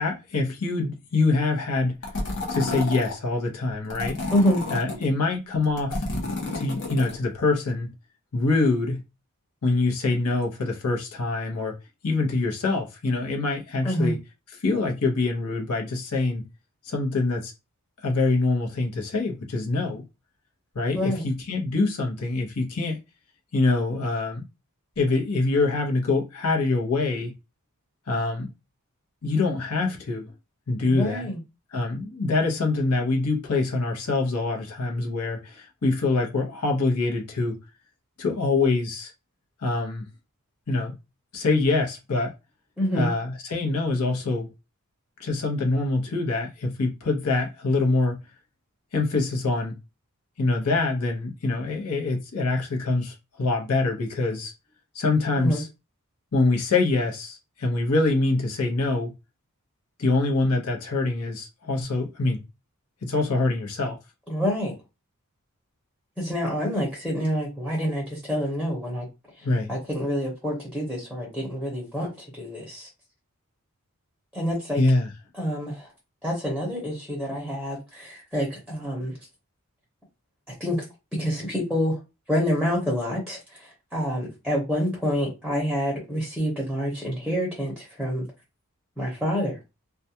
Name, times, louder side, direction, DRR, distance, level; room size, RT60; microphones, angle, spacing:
voice 1, 0.0-2.0 2.5-4.2 4.7-6.1 6.5-7.9 8.3-9.0 9.6-11.7 12.0-14.2 14.6-16.5 16.8-17.5 18.0-20.0 20.7-23.0 23.5-24.5 25.0-27.3 28.1-28.5 29.2-30.3 30.7-31.3 31.7-37.6 38.2-39.1 39.6-40.1 40.7-41.0 41.3-42.3 42.9-44.5 45.2-48.2 48.9-49.7 50.4-54.5 54.9-55.7 56.3-59.1 60.0-62.4 63.0-64.0 69.4-69.7 74.8-75.1, left 3 dB, 90° left, 0.8 m, -25 dB
sound 1, 2.0-3.1 3.9-5.1 5.6-7.2, left 2 dB, 55° left, 0.8 m, -30 dB
voice 2, 4.3-4.6 13.8-14.1 20.9-21.2 30.9-31.4 42.8-43.1 55.4-55.6 64.3-64.7 66.2-69.1 69.7-72.9 74.3-74.8 75.4-75.9 76.2-79.1 80.6-80.8 81.1-82.0 82.3-88.2 89.0-89.6, equal, ahead, 0.7 m, -27 dB
2.3 x 2.2 x 2.7 m
head